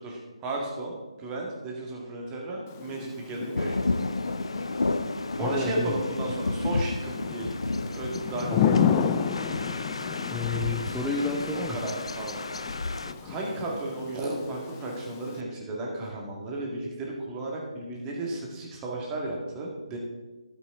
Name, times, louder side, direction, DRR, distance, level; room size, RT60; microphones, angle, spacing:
voice 1, 0.0-3.9 5.4-7.6 7.9-9.0 11.5-12.8 13.2-20.0, right 2 dB, 15° right, -1 dB, 2.0 m, -34 dB
Thunder / Rain, 2.7-15.4, left 7 dB, 25° left, 0.5 m, -32 dB
sound 1, 3.5-13.1, left 3 dB, 70° left, 0.5 m, -32 dB
voice 2, 5.4-5.9 8.5-8.6 10.3-11.8, left 3 dB, ahead, -5 dB, 0.8 m, -30 dB
12.5 x 7.2 x 3.8 m, 1.2 s
figure-of-eight pair, 145°, 3 cm